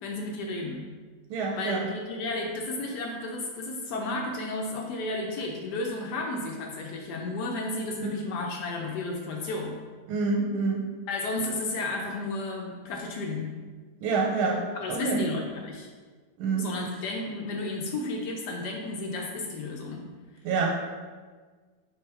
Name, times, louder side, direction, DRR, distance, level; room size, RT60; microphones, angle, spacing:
voice 1, 0.0-0.9 1.5-9.8 11.1-13.5 14.7-15.9 16.6-20.0, left 2 dB, 75° left, 1 dB, 0.9 m, -32 dB
voice 2, 1.3-1.9 8.0-8.1 10.1-10.8 14.0-14.6 14.9-15.2 16.4-16.7 20.4-20.7, right 4 dB, 85° right, -1 dB, 1.4 m, -27 dB
3.5 x 3.0 x 4.6 m, 1.5 s
omnidirectional pair, 2.2 m